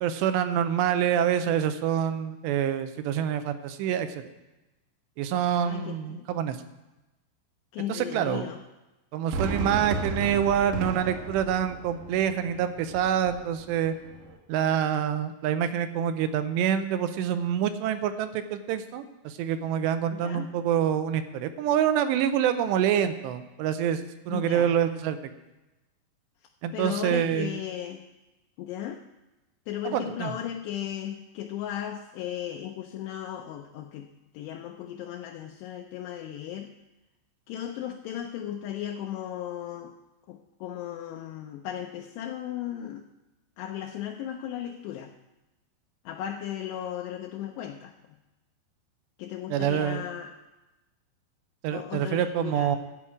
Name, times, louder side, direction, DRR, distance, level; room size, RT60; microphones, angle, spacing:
voice 1, 0.0-4.2 5.2-6.6 7.9-8.4 9.1-14.0 14.5-25.2 26.6-27.6 29.8-30.3 49.5-50.0 51.6-52.8, right 9 dB, 80° right, 10 dB, 2.8 m, -26 dB
voice 2, 5.6-6.3 7.7-8.6 20.1-20.5 24.3-24.7 26.7-28.1 28.6-29.0 29.7-36.7 37.5-40.0 40.3-43.1 43.6-45.1 46.1-48.2 49.2-50.4 51.7-52.8, left 10 dB, 80° left, 3 dB, 2.6 m, -36 dB
Fireworks, 9.3-14.4, right 2 dB, 65° right, 2.2 m, -35 dB
12.5 x 4.8 x 8.6 m, 1.0 s
omnidirectional pair, 5.1 m